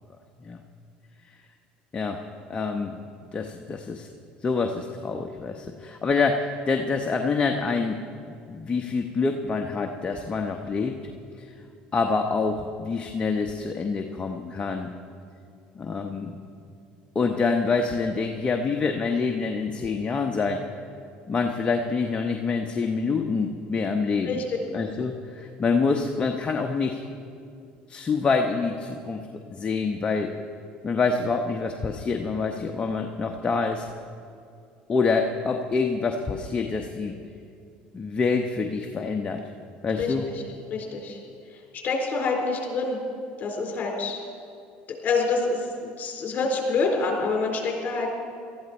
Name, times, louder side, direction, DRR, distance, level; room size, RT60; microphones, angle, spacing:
voice 1, 2.5-3.0 3.3-4.1 4.4-8.0 8.5-11.0 11.4-11.5 11.9-14.9 15.8-16.4 17.1-20.6 21.3-24.4 24.7-27.0 27.9-29.2 29.5-30.3 30.8-33.9 34.9-37.2 37.9-39.4 39.8-40.2, left 4 dB, 30° left, 3 dB, 0.9 m, -26 dB
voice 2, 24.3-24.6 40.0-40.4 40.7-41.2 41.5-43.0 43.4-44.2 45.0-48.1, left 3 dB, 45° left, 1 dB, 4.0 m, -27 dB
18.5 x 13.5 x 4.4 m, 2.4 s
supercardioid pair, 90°, 4 cm